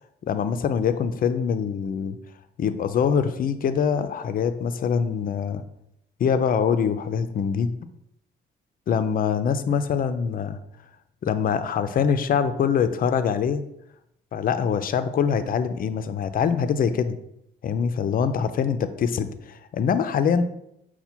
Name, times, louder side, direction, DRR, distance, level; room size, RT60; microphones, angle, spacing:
voice 1, 0.3-2.2 2.6-5.6 6.2-7.7 8.9-10.6 11.2-13.6 14.3-17.2 17.6-20.4, left 7 dB, 45° left, 10 dB, 0.4 m, -24 dB
5.5 x 2.2 x 4.3 m, 0.77 s
cardioid pair, 90°, 20 cm